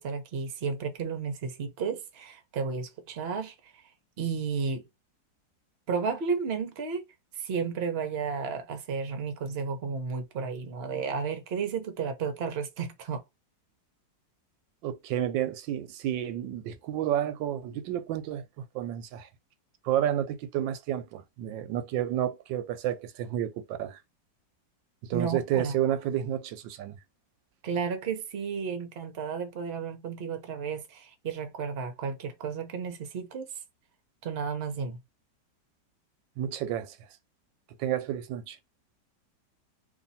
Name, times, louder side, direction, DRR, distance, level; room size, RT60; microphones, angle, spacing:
voice 1, 0.0-3.8 4.2-4.8 5.9-7.0 7.3-13.2 25.1-25.7 27.6-33.5 34.2-35.0, right 5 dB, 45° right, 0.8 m, -33 dB
voice 2, 14.8-18.4 18.7-19.3 19.8-24.0 25.0-27.0 36.4-37.0 37.8-38.6, right 11 dB, 90° right, 1.3 m, -30 dB
2.8 x 2.8 x 4.0 m
omnidirectional pair, 2.0 m